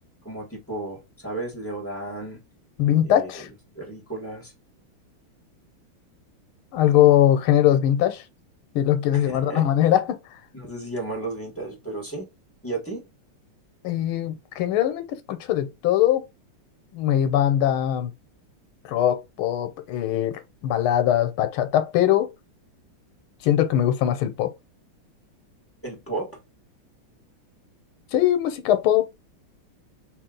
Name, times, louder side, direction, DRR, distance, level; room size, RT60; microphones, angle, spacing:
voice 1, 0.2-2.4 3.0-3.5 3.7-4.5 9.1-9.7 10.5-12.3 12.6-13.0 25.8-26.4, right 2 dB, 5° left, 1.4 m, -33 dB
voice 2, 2.8-3.5 6.7-8.2 8.7-10.2 13.8-16.2 16.9-18.1 18.9-22.3 23.4-24.5 28.1-29.1, left 11 dB, 85° left, 1.6 m, -21 dB
3.4 x 2.9 x 3.8 m
omnidirectional pair, 2.3 m